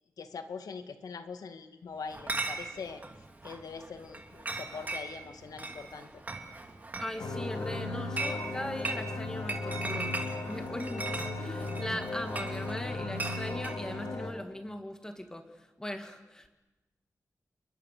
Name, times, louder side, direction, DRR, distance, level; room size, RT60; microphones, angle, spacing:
voice 1, 0.2-3.0 3.4-6.1, left 5 dB, 85° left, 8 dB, 2.0 m, -42 dB
Chatter / Chink clink, 2.1-13.8, right 2 dB, 25° right, 2.6 m, -39 dB
voice 2, 7.0-10.2 10.5-16.5, left 1 dB, 10° left, 6 dB, 2.0 m, -39 dB
sound 1, 7.2-14.3, left 2 dB, 70° left, 3.5 m, -36 dB
29.5 x 23.0 x 6.8 m, 1.1 s
wide cardioid pair, 160°, 6 cm